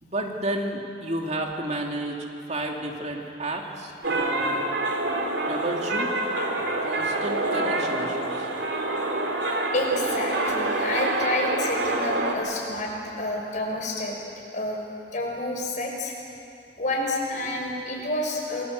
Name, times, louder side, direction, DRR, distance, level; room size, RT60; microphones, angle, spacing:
voice 1, 0.0-4.7 5.5-6.2 6.8-8.5, right 1 dB, 40° right, 1 dB, 2.6 m, -32 dB
sound 1, 4.0-12.3, right 2 dB, 85° right, 3.0 m, -26 dB
voice 2, 9.7-14.2 14.5-14.8 15.1-16.1 16.8-18.6, left 1 dB, 45° left, -1 dB, 6.0 m, -29 dB
28.0 x 22.0 x 8.1 m, 2.7 s
head